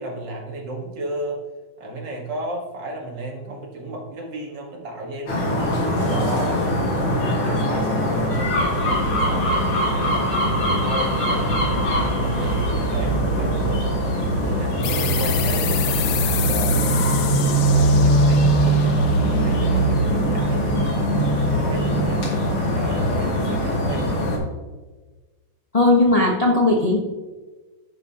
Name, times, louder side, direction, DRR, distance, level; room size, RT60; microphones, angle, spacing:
voice 1, 0.0-1.4 1.8-6.8 7.3-10.3 10.8-13.8 14.4-18.9 19.4-24.2, right 2 dB, 60° right, 1 dB, 2.1 m, -33 dB
sound 1, 5.3-24.4, equal, 85° left, 3.3 m, -21 dB
sound 2, 14.1-17.5, right 4 dB, 80° right, 1.8 m, -35 dB
sound 3, 14.8-20.1, left 10 dB, 65° left, 1.2 m, -29 dB
voice 2, 25.7-27.0, left 2 dB, 30° left, -1 dB, 0.6 m, -17 dB
10.5 x 8.6 x 2.9 m, 1.3 s
omnidirectional pair, 2.3 m